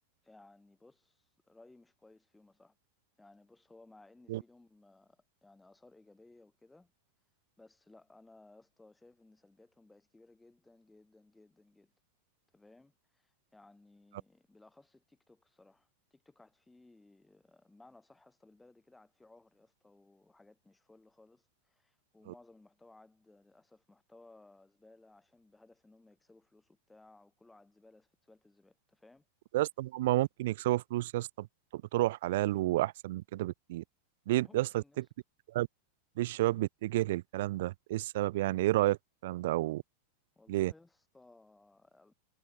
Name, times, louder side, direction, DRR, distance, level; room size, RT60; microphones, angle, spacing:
voice 1, 0.2-2.8 3.2-6.9 7.6-11.9 12.5-29.3 34.4-35.0 40.4-42.1, left 2 dB, 5° left, 2.0 m, -61 dB
voice 2, 29.5-31.5 31.7-33.8 34.3-34.8 35.5-35.7 36.2-39.0 39.2-39.8 40.5-40.7, right 16 dB, 55° right, 0.4 m, -30 dB
figure-of-eight pair, 90°, 0 cm